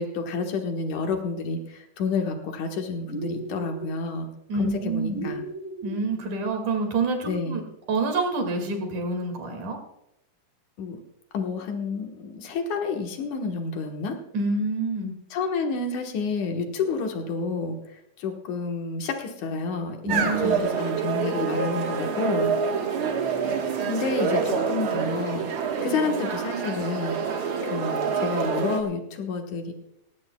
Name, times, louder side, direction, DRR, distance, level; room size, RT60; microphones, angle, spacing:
voice 1, 0.0-4.3 4.6-5.4 7.3-7.6 10.8-11.0 11.3-14.2 15.3-22.5 23.3-25.5 25.8-29.7, left 4 dB, 80° left, 3 dB, 2.8 m, -30 dB
sound 1, 3.1-4.0 5.1-6.0, right 2 dB, 25° left, 2.5 m, -35 dB
voice 2, 4.5-5.3 5.8-7.6 7.9-9.8 14.3-15.1 20.0-20.6, right 3 dB, 80° right, 4 dB, 3.7 m, -27 dB
sound 2, 20.1-28.8, right 6 dB, 55° right, 1.9 m, -27 dB
18.5 x 17.0 x 2.3 m, 0.81 s
omnidirectional pair, 3.4 m